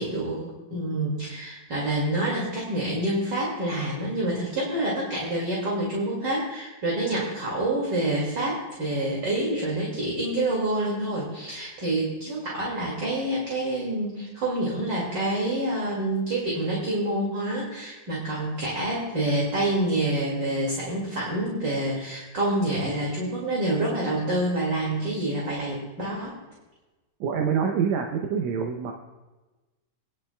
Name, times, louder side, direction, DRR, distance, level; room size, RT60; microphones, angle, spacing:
voice 1, 0.0-26.3, right 1 dB, 40° right, -4 dB, 2.5 m, -27 dB
voice 2, 27.2-28.9, right 6 dB, 75° right, 3 dB, 1.9 m, -26 dB
21.0 x 10.5 x 2.2 m, 1.2 s
omnidirectional pair, 3.5 m